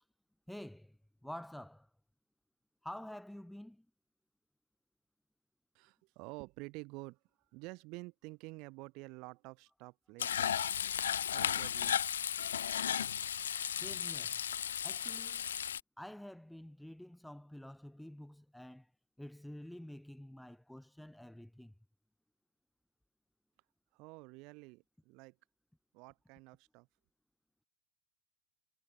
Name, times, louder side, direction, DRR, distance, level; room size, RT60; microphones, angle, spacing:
voice 1, 0.5-0.9 1.2-1.9 2.8-3.8 13.8-14.4 14.8-15.5 16.0-18.9 19.2-21.7, left 1 dB, ahead, 3.0 m, -49 dB
voice 2, 5.7-7.2 7.5-10.6 11.2-12.0 12.6-12.8 23.9-25.4 25.9-26.9, right 26 dB, 40° right, 5.5 m, -50 dB
Frying (food), 10.2-15.8, left 9 dB, 65° left, 0.5 m, -35 dB
figure-of-eight pair, 90°, 0 cm